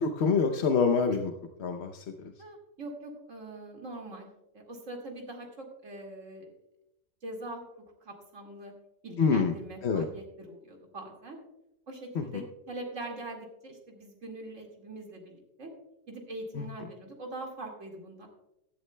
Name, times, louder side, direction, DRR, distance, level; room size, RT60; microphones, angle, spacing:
voice 1, 0.0-1.3 1.6-2.3 9.2-9.5 9.8-10.1 12.1-12.4 16.5-16.7, left 5 dB, 55° left, 6 dB, 0.7 m, -26 dB
voice 2, 2.4-4.3 4.5-6.5 7.2-7.6 8.0-8.7 9.0-11.4 11.9-15.7 16.1-18.3, right 2 dB, 45° right, 1 dB, 2.4 m, -43 dB
15.5 x 11.0 x 2.2 m, 0.87 s
omnidirectional pair, 1.8 m